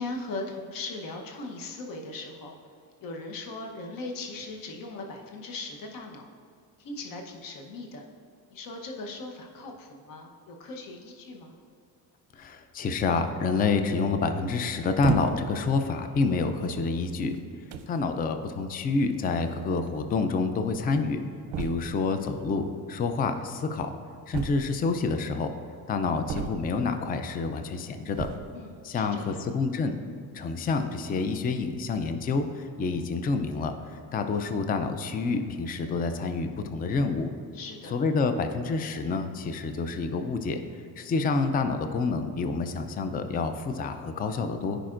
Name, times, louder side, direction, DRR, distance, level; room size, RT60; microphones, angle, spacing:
voice 1, 0.0-2.5 3.0-6.3 6.8-8.0 8.5-11.6 28.5-29.4 37.5-37.9, left 2 dB, 55° left, 1 dB, 1.0 m, -39 dB
voice 2, 12.3-17.4 17.9-21.2 21.6-23.9 24.3-25.5 25.9-28.3 28.8-30.0 30.3-33.7 34.1-37.3 37.9-40.6 41.0-44.8, left 4 dB, 25° left, 8 dB, 0.4 m, -28 dB
sound 1, 15.0-15.6 16.4-16.6 17.4-17.5 17.7-18.0 19.2-19.3 19.5-19.6 19.9-20.0 21.5-22.0 24.3-25.0 26.3-26.9 28.1-28.6, right 7 dB, 65° right, 0.7 m, -33 dB
14.5 x 5.1 x 2.5 m, 2.2 s
cardioid pair, 120°, 41 cm